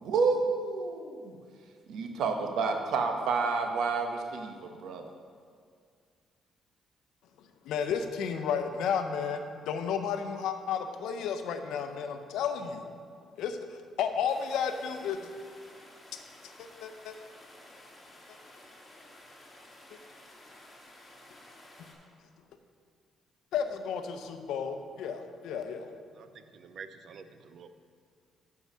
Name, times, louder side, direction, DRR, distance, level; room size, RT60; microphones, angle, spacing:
voice 1, 0.0-1.3 1.9-5.0, right 4 dB, 80° right, 4 dB, 0.9 m, -29 dB
voice 2, 7.6-12.8 13.4-13.6 14.0-15.2 16.6-17.1 21.8-21.9 23.5-25.9, left 7 dB, 85° left, 7 dB, 0.6 m, -32 dB
sound 1, 14.2-21.9, left 1 dB, 25° left, 1.7 m, -53 dB
voice 3, 26.1-27.7, right 6 dB, 65° right, 10 dB, 0.5 m, -48 dB
8.1 x 4.7 x 6.1 m, 2.1 s
cardioid pair, 90°, 0 cm